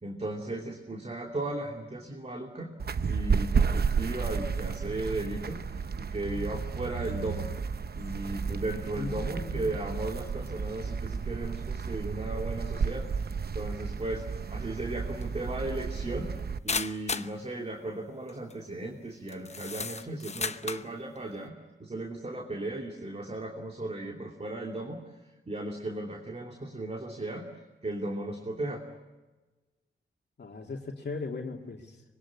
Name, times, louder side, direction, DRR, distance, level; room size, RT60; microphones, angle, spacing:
voice 1, 0.0-2.7 3.0-7.5 7.9-13.1 13.5-14.2 14.5-16.3 16.6-21.5 21.8-25.1 25.5-27.5 27.8-28.8, right 2 dB, 30° right, 2 dB, 2.8 m, -36 dB
sound 1, 2.8-16.6, right 5 dB, 50° right, 0.9 m, -32 dB
voice 2, 9.0-9.8 30.4-32.0, left 3 dB, 55° left, 0 dB, 2.7 m, -38 dB
sound 2, 15.2-15.3 16.7-17.3 18.3-18.5 19.3-20.9, left 4 dB, 35° left, 0.9 m, -34 dB
25.0 x 22.0 x 9.8 m, 1.2 s
wide cardioid pair, 100°, 20 cm